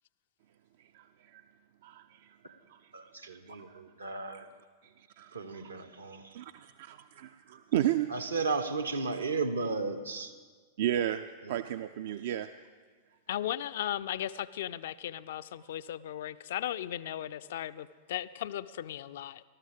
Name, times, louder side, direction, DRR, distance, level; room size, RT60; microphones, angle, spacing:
voice 1, 0.9-1.4 1.8-2.8 3.3-3.8 4.4-4.5 4.8-5.6 6.3-8.1 10.8-11.2 11.5-12.5, right 12 dB, 55° right, 10 dB, 0.3 m, -34 dB
voice 2, 2.9-4.5 5.3-6.4 8.1-10.3 11.4-11.6, right 4 dB, 75° right, 8 dB, 0.9 m, -34 dB
voice 3, 13.3-19.4, left 11 dB, 60° left, 14 dB, 0.3 m, -36 dB
18.5 x 13.0 x 3.5 m, 1.5 s
figure-of-eight pair, 90°, 0 cm